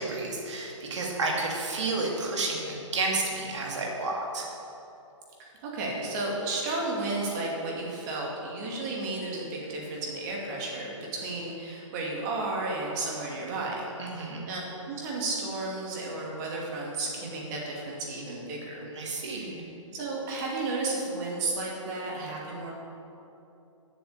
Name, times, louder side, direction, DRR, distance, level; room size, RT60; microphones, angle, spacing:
voice 1, 0.0-4.5 14.0-14.4 19.0-19.6, right 3 dB, 60° right, -1 dB, 2.5 m, -31 dB
voice 2, 5.4-14.6 14.8-18.9 19.3-19.5 19.9-22.7, right 2 dB, 35° right, -3 dB, 2.5 m, -33 dB
7.9 x 7.0 x 8.0 m, 2.9 s
hypercardioid pair, 140°, 17 cm